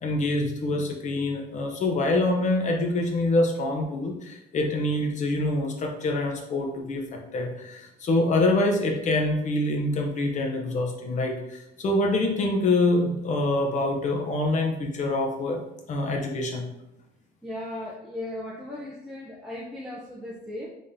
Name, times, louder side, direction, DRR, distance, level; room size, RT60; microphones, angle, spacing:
voice 1, 0.0-15.6 15.9-16.7, left 2 dB, 45° left, 2 dB, 0.8 m, -25 dB
voice 2, 17.4-20.8, left 1 dB, ahead, -6 dB, 0.6 m, -37 dB
3.7 x 3.5 x 2.7 m, 0.87 s
cardioid pair, 110°, 17 cm